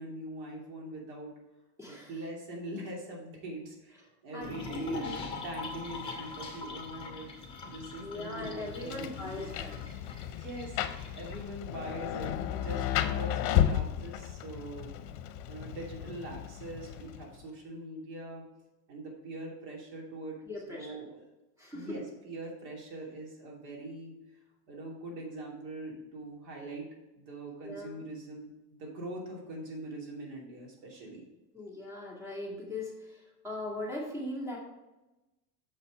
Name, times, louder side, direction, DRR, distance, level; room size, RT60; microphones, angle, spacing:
voice 1, 0.0-1.3 1.9-7.3 7.7-9.5 10.3-10.8 11.1-14.9 15.5-18.4 18.9-20.4 20.7-21.3 21.7-24.1 24.7-26.9 27.2-31.2, right 1 dB, 90° right, -1 dB, 3.0 m, -42 dB
voice 2, 1.8-2.1 4.3-5.2 8.0-9.8 20.5-21.0 21.6-22.0 27.6-28.0 31.5-34.6, left 1 dB, 5° right, -3 dB, 1.7 m, -39 dB
sound 1, 4.4-11.4, left 3 dB, 10° left, 1.5 m, -43 dB
Rain, 8.4-17.4, left 11 dB, 60° left, 0.8 m, -33 dB
6.9 x 5.7 x 4.9 m, 1.0 s
cardioid pair, 160°, 49 cm